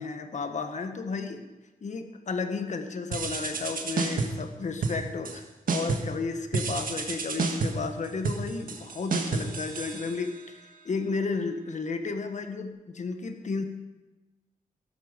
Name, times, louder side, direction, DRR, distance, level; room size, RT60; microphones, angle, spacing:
voice 1, 0.0-1.5 1.8-10.6 10.8-13.6, left 4 dB, 55° left, 6 dB, 1.5 m, -33 dB
sound 1, 3.1-4.5 4.8-5.4 5.7-6.2 6.5-10.5, right 4 dB, 75° right, 1.6 m, -30 dB
13.5 x 12.0 x 5.3 m, 1.1 s
wide cardioid pair, 100°, 15 cm